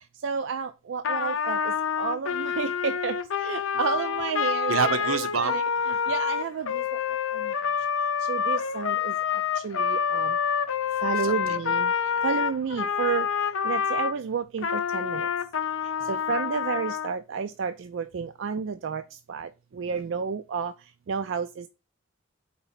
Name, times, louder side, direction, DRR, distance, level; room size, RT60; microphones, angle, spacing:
voice 1, 0.2-1.6 2.0-3.2 3.4-4.7 5.4-5.6 6.1-6.8 8.3-9.1 9.6-10.3 11.0-11.9 12.2-13.3 13.6-15.3 16.1-19.0 19.3-19.5 19.8-20.7 21.1-21.5, right 6 dB, 60° right, 0.3 m, -30 dB
Trumpet, 1.0-14.1 14.6-17.1, left 7 dB, 70° left, 0.5 m, -27 dB
voice 2, 4.4-6.0 11.2-11.6 12.1-12.2 16.0-16.2 19.8-20.1, right 5 dB, 85° right, 0.8 m, -30 dB
4.4 x 4.0 x 5.6 m
head